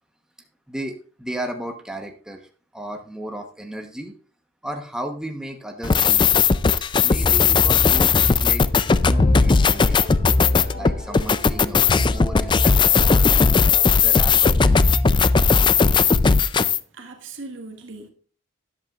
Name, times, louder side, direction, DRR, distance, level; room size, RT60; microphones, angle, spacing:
voice 1, 0.7-4.1 4.6-6.3 7.0-8.6 9.0-10.1 10.7-13.2 14.0-14.6, right 1 dB, 5° right, 1.0 m, -34 dB
sound 1, 5.8-16.8, left 5 dB, 25° left, 0.3 m, -17 dB
sound 2, 8.8-13.8, left 2 dB, 45° left, 1.7 m, -39 dB
voice 2, 16.9-18.1, right 3 dB, 70° right, 1.7 m, -38 dB
12.5 x 10.5 x 2.4 m
head